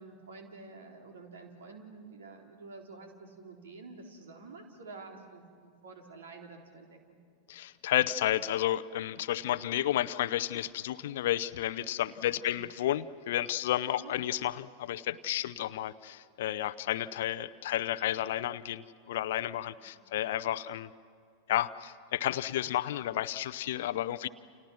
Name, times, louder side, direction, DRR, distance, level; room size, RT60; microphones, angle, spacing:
voice 1, 0.0-7.2 12.1-12.6 13.9-14.1 19.8-20.0 24.1-24.3, right 3 dB, 65° right, 3 dB, 3.7 m, -49 dB
voice 2, 7.5-20.9 21.5-24.3, left 13 dB, 55° left, 17 dB, 0.7 m, -32 dB
30.0 x 29.0 x 6.2 m, 2.4 s
figure-of-eight pair, 90°, 0 cm